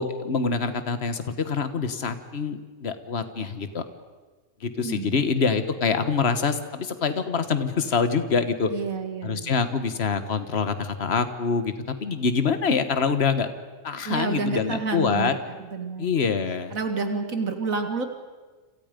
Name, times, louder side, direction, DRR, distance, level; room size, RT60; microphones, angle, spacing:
voice 1, 0.0-3.8 4.6-8.7 9.2-13.5 13.8-15.3 16.0-16.7, left 5 dB, 50° left, 10 dB, 1.7 m, -25 dB
voice 2, 4.8-5.2 8.7-9.6 14.0-16.1 16.7-18.0, right 4 dB, 90° right, 6 dB, 2.4 m, -29 dB
29.0 x 27.0 x 5.3 m, 1.3 s
omnidirectional pair, 1.4 m